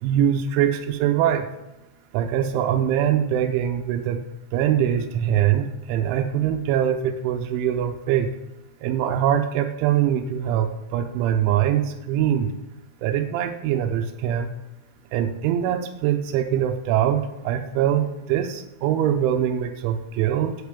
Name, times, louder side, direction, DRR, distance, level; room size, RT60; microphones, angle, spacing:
voice 1, 0.0-1.5 2.1-4.2 4.5-8.3 8.8-12.5 13.0-14.5 15.1-20.6, right 10 dB, 90° right, 6 dB, 3.3 m, -23 dB
9.0 x 8.3 x 8.4 m, 0.96 s
omnidirectional pair, 5.4 m